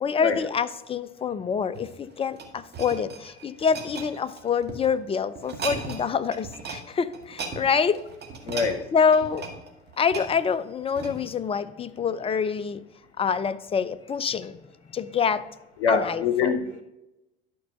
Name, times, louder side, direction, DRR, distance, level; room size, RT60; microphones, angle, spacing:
voice 1, 0.0-8.0 8.9-9.5 10.0-12.8 13.2-14.6 14.9-15.4 15.9-16.5, left 6 dB, 20° left, 15 dB, 0.5 m, -26 dB
sound 1, 1.6-4.9 5.4-6.1 6.3-6.8 7.1-11.4 12.0-12.1, right 4 dB, 30° right, 1.8 m, -37 dB
voice 2, 8.4-8.8 15.0-15.3 15.8-16.8, left 5 dB, 85° left, 7 dB, 0.7 m, -25 dB
11.5 x 4.5 x 5.4 m, 0.94 s
figure-of-eight pair, 65°, 33 cm